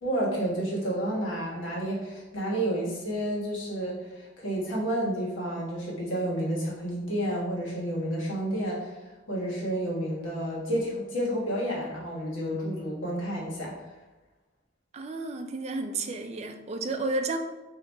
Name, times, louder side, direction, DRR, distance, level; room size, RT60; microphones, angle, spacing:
voice 1, 0.0-9.0 9.3-13.7, right 1 dB, 90° left, -5 dB, 1.4 m, -30 dB
voice 2, 14.9-17.4, right 3 dB, 35° right, 5 dB, 0.4 m, -32 dB
4.1 x 2.8 x 3.4 m, 1.1 s
head